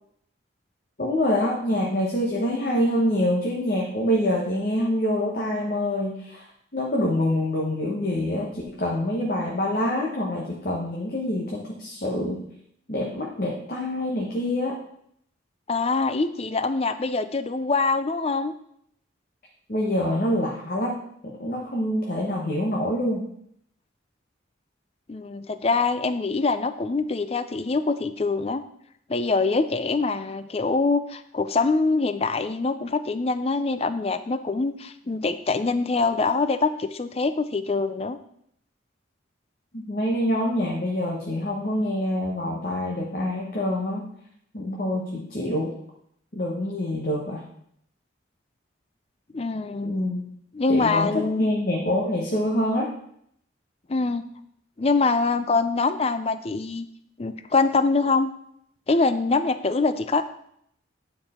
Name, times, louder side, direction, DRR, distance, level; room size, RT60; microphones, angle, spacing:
voice 1, 1.0-6.5 6.7-12.4 12.9-14.8 19.7-23.2 39.7-44.1 44.5-45.7 46.3-47.4 49.8-50.2 50.7-52.9, left 1 dB, 45° left, -2 dB, 1.1 m, -26 dB
voice 2, 15.7-18.5 25.1-28.6 29.1-38.2 49.3-50.0 50.5-51.4 53.9-54.2 54.8-56.9 57.2-58.3 58.9-60.2, left 3 dB, 30° left, 11 dB, 0.4 m, -24 dB
9.6 x 4.6 x 4.3 m, 0.70 s
head